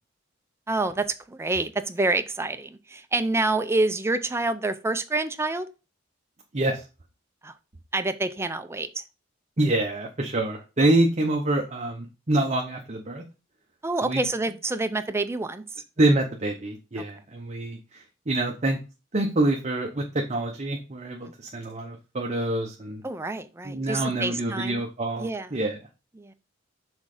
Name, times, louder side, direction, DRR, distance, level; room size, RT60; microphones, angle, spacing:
voice 1, 0.7-5.7 7.4-7.5 7.9-9.0 13.8-15.6 23.0-24.8 25.2-25.5 26.2-26.3, right 2 dB, 15° right, 0.5 m, -27 dB
voice 2, 6.5-6.8 9.6-13.2 14.0-14.2 16.0-18.8 19.1-23.0 23.6-25.8, right 1 dB, 35° right, 0.8 m, -26 dB
6.3 x 3.7 x 4.9 m
head